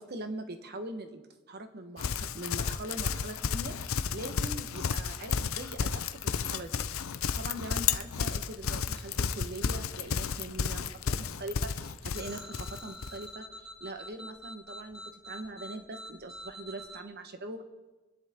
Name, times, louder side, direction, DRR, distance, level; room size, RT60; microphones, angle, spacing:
voice 1, 0.0-6.8 7.3-17.6, right 1 dB, 50° right, 7 dB, 1.2 m, -42 dB
Livestock farm animals working animals, 2.0-13.2, left 6 dB, 90° left, 0.6 m, -32 dB
sound 1, 12.1-17.0, equal, 5° right, 1.1 m, -46 dB
24.5 x 10.5 x 3.7 m, 1.2 s
head